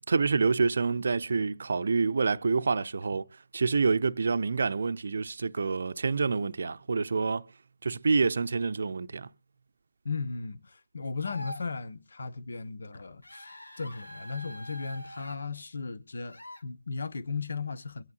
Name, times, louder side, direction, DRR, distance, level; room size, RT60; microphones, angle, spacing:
voice 1, 0.0-3.3 3.5-7.5 7.8-9.3, right 4 dB, 55° right, 0.6 m, -27 dB
voice 2, 10.0-18.0, left 4 dB, 60° left, 1.0 m, -36 dB
sound 1, 11.2-11.7 13.2-15.4 16.3-16.6, left 1 dB, 85° left, 1.7 m, -44 dB
23.5 x 9.4 x 2.5 m
figure-of-eight pair, 155°, 0 cm